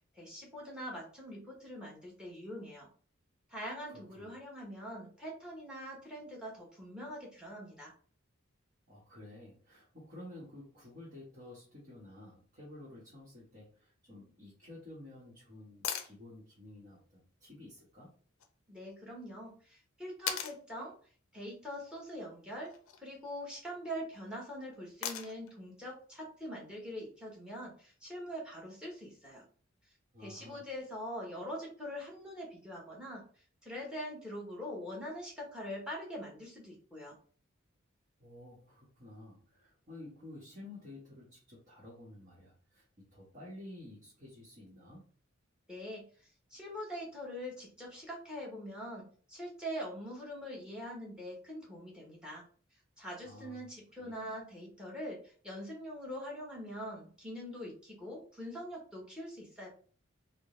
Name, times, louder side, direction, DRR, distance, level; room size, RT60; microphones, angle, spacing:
voice 1, 0.1-2.9 3.5-7.9 18.7-21.0 21.3-22.7 23.0-29.4 30.2-33.2 33.6-37.2 45.7-52.5 53.0-59.7, equal, 5° right, -3 dB, 1.1 m, -43 dB
voice 2, 3.9-4.3 8.9-18.1 30.1-30.6 38.2-45.1 53.2-53.7 54.0-54.2, left 1 dB, 40° right, -7 dB, 1.2 m, -52 dB
sound 1, 15.8-16.1 18.4-18.5 20.3-20.6 22.6-23.0 25.0-25.5 27.6-27.7, left 8 dB, 85° left, 0.5 m, -37 dB
3.7 x 2.1 x 3.7 m, 0.43 s
head